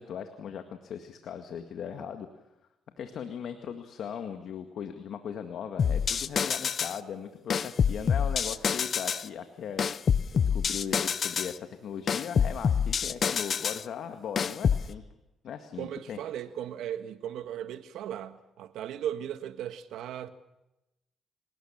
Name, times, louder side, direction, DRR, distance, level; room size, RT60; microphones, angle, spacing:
voice 1, 0.0-2.3 3.0-9.9 10.3-15.0 15.4-16.2, left 8 dB, 70° left, 1.9 m, -38 dB
sound 1, 5.8-7.0 7.5-9.3 9.8-11.5 12.1-13.8 14.4-14.9, left 7 dB, 50° left, 0.8 m, -27 dB
voice 2, 15.8-20.3, right 10 dB, 85° right, 1.6 m, -37 dB
27.0 x 19.0 x 7.3 m
cardioid pair, 90°, 0 cm